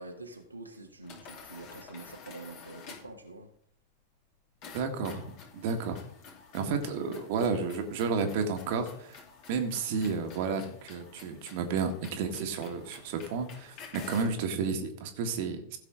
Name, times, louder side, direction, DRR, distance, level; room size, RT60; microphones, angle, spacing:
voice 1, 0.0-3.5, right 2 dB, 85° right, 1 dB, 1.5 m, -46 dB
sound 1, 1.0-3.2 4.6-14.4, left 5 dB, 45° left, 2.7 m, -50 dB
voice 2, 4.7-6.0 6.5-9.2 9.5-15.8, right 5 dB, 50° right, 5 dB, 1.6 m, -32 dB
16.0 x 6.7 x 3.8 m, 0.70 s
figure-of-eight pair, 90°, 0 cm